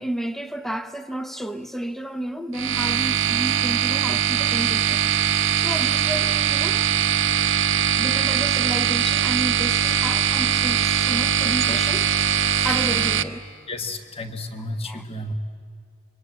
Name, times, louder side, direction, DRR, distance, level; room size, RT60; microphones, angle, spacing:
voice 1, 0.0-5.1 5.6-7.1 7.9-12.1 12.6-13.5 14.9-15.0, right 1 dB, ahead, 0.7 m, -31 dB
sound 1, 2.5-13.2, right 9 dB, 55° right, 0.7 m, -21 dB
voice 2, 13.7-15.3, left 2 dB, 25° left, 1.4 m, -32 dB
26.0 x 24.0 x 8.9 m
head